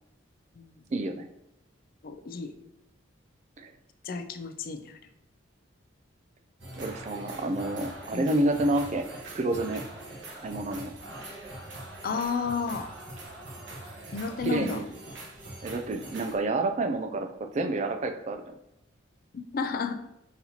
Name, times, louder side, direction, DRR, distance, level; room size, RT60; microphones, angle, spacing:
voice 1, 0.9-1.3 3.6-3.7 6.8-9.1 9.3-9.8 10.4-10.9 14.4-14.8 15.6-18.5, right 2 dB, 35° right, 7 dB, 0.3 m, -29 dB
voice 2, 2.0-2.5 4.0-5.0 8.1-8.3 12.0-12.9 14.1-14.8 19.3-20.0, left 5 dB, 50° left, 8 dB, 0.4 m, -32 dB
sound 1, 6.6-16.4, right 1 dB, 65° right, 1.0 m, -42 dB
4.2 x 4.0 x 2.8 m, 0.85 s
head